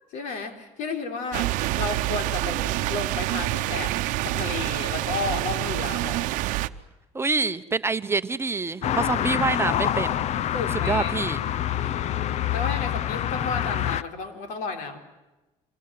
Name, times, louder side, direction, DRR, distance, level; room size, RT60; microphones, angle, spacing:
voice 1, 0.1-6.3 9.2-9.4 10.5-11.2 11.8-12.0 12.5-15.0, left 4 dB, 85° left, 7 dB, 3.9 m, -33 dB
sound 1, 1.3-6.7, right 17 dB, 90° right, 0.8 m, -27 dB
voice 2, 7.1-10.2 10.9-11.4, right 4 dB, 20° right, 11 dB, 1.0 m, -26 dB
sound 2, 8.8-14.0, left 11 dB, 60° left, 0.8 m, -26 dB
26.5 x 23.5 x 7.6 m, 1.1 s
cardioid pair, 110°, 13 cm